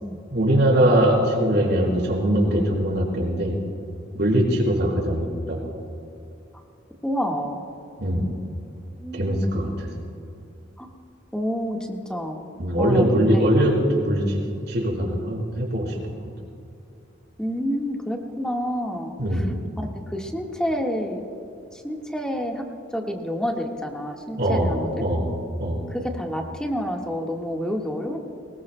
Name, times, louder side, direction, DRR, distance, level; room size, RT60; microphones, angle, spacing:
voice 1, 0.3-3.6 4.1-5.6 8.0-8.3 9.2-9.9 12.6-14.4 14.7-16.0 19.2-19.6 24.4-25.9, right 1 dB, 60° right, -2 dB, 4.1 m, -22 dB
voice 2, 4.3-4.6 7.0-7.7 9.0-9.7 10.8-10.9 11.3-12.4 12.8-13.4 14.2-14.3 17.4-19.4 19.8-21.2 21.7-22.7 22.9-25.0 25.9-28.2, equal, 5° left, 0 dB, 1.5 m, -29 dB
23.0 x 20.5 x 2.2 m, 2.7 s
head